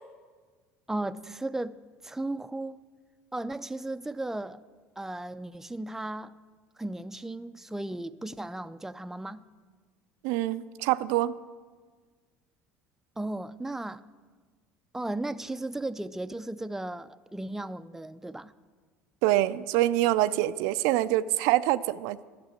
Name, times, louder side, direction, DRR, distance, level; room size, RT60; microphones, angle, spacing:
voice 1, 0.9-1.8 2.0-2.8 3.3-4.6 5.0-6.3 6.8-9.4 13.2-14.0 14.9-18.5, right 2 dB, 5° right, 0.4 m, -35 dB
voice 2, 10.2-11.3 19.2-22.2, right 15 dB, 70° right, 0.4 m, -25 dB
11.0 x 6.8 x 9.3 m
hypercardioid pair, 75°, 7 cm